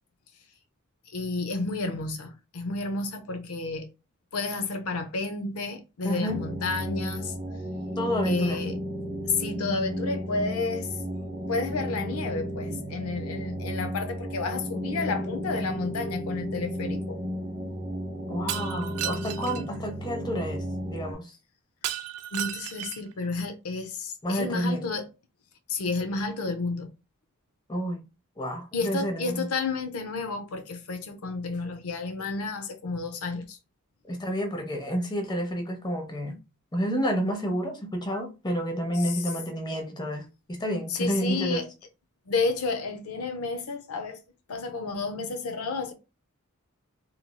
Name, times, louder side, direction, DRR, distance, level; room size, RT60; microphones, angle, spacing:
voice 1, 1.1-3.9 4.3-7.4 8.2-8.8 9.2-11.0 11.5-17.2 19.7-19.8 22.3-25.1 25.7-26.9 28.7-33.6 38.9-39.2 40.9-41.7 42.3-44.2 44.5-45.9, left 3 dB, 75° left, 0.5 m, -31 dB
voice 2, 6.0-6.4 8.0-8.6 18.3-21.3 24.2-24.8 27.7-28.0 28.4-29.5 34.1-36.4 36.7-41.6, equal, 20° left, 0.7 m, -30 dB
sound 1, 6.3-21.1, equal, 25° right, 0.8 m, -33 dB
Shatter, 18.5-19.6 21.8-23.1, right 12 dB, 90° right, 0.4 m, -34 dB
3.0 x 2.6 x 2.2 m
head